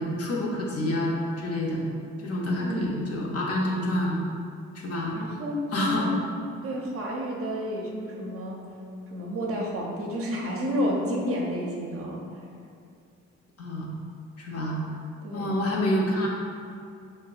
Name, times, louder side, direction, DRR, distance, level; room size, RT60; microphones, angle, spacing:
voice 1, 0.0-1.8 2.2-4.2 4.7-5.1 5.7-6.0 13.6-13.9 14.4-14.8 15.3-16.3, left 1 dB, 50° left, -3 dB, 0.6 m, -28 dB
voice 2, 2.6-3.2 5.1-6.1 6.6-8.6 9.1-12.2 15.2-15.6, equal, 50° right, -2 dB, 0.5 m, -30 dB
2.6 x 2.1 x 2.3 m, 2.4 s
supercardioid pair, 60°, 31 cm